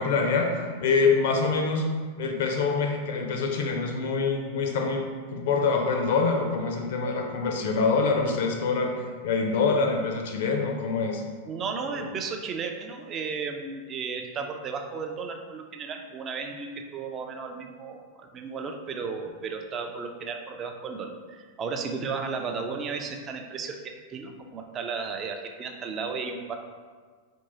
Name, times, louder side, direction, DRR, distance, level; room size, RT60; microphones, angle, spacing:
voice 1, 0.0-1.9 2.2-5.0 5.3-11.2 11.9-12.1, left 4 dB, 55° left, 3 dB, 0.5 m, -25 dB
voice 2, 11.5-23.8 24.1-26.6, right 5 dB, 30° right, 4 dB, 0.4 m, -34 dB
4.4 x 2.7 x 2.8 m, 1.5 s
figure-of-eight pair, 90°, 0 cm